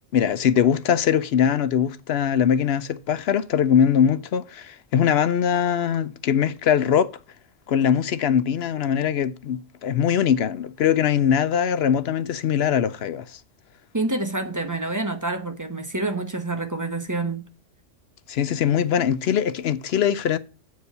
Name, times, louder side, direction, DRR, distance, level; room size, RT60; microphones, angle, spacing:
voice 1, 0.1-7.1 7.7-13.4 18.3-20.4, left 8 dB, 60° left, 0.8 m, -21 dB
voice 2, 13.9-17.5, right 2 dB, 15° right, 0.9 m, -27 dB
8.1 x 4.8 x 6.6 m
omnidirectional pair, 1.3 m